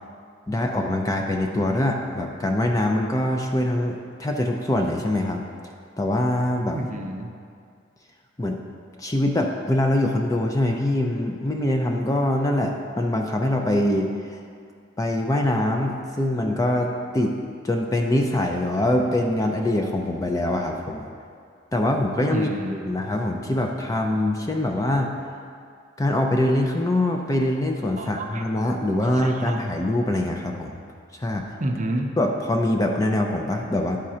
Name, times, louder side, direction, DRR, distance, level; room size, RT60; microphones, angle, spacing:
voice 1, 0.5-5.4 6.0-6.8 8.4-8.6 9.0-14.4 15.0-17.4 17.6-21.1 21.7-22.5 22.9-25.1 26.0-30.8 31.2-31.5 32.2-34.0, left 1 dB, 15° left, 2 dB, 0.4 m, -23 dB
voice 2, 6.7-7.4 22.3-23.0 28.0-28.5 29.0-29.6 31.6-32.2, right 1 dB, 40° right, 3 dB, 0.5 m, -30 dB
11.0 x 3.8 x 4.3 m, 2.3 s
head